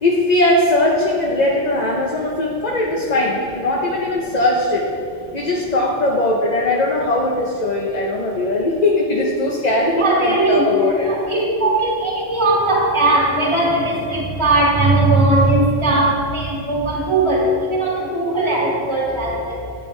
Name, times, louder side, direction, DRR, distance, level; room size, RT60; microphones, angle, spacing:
voice 1, 0.0-4.9 5.3-11.1, left 2 dB, 40° left, -2 dB, 0.9 m, -19 dB
voice 2, 9.9-10.6 11.0-19.6, right 2 dB, 25° right, -4 dB, 1.8 m, -18 dB
13.0 x 9.1 x 3.3 m, 2.7 s
omnidirectional pair, 1.3 m